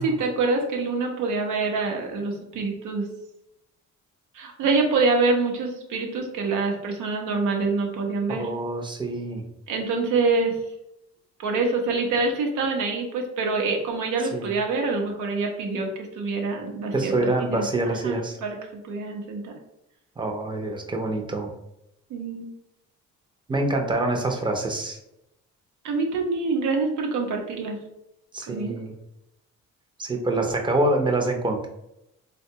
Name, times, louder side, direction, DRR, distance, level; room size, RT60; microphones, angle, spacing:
voice 1, 0.0-3.0 4.3-8.5 9.7-10.6 11.4-19.5 22.1-22.5 25.8-27.8 28.5-28.7, right 3 dB, 85° right, 2 dB, 0.7 m, -26 dB
voice 2, 8.3-9.4 14.3-14.5 16.9-18.4 20.2-21.5 23.5-25.0 28.3-28.9 30.0-31.7, right 2 dB, 15° right, 2 dB, 0.6 m, -26 dB
3.5 x 2.2 x 2.7 m, 0.83 s
cardioid pair, 90°, 30 cm